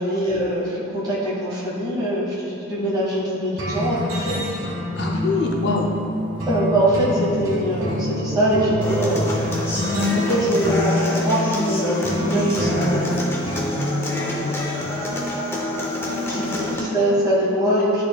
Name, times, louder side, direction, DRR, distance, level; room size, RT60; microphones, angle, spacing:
voice 1, 0.0-4.4 6.5-13.1 16.3-18.0, right 1 dB, 20° right, -8 dB, 1.4 m, -23 dB
sound 1, 3.6-14.9, left 1 dB, 75° right, 1.4 m, -27 dB
sound 2, 4.9-9.6, left 1 dB, 55° right, 1.0 m, -31 dB
voice 2, 5.0-5.9 14.2-14.6 16.3-16.8, left 3 dB, 55° left, 0 dB, 0.5 m, -26 dB
Human voice / Acoustic guitar, 8.8-16.8, left 1 dB, 10° left, 0.6 m, -26 dB
10.0 x 4.1 x 2.3 m, 2.7 s
head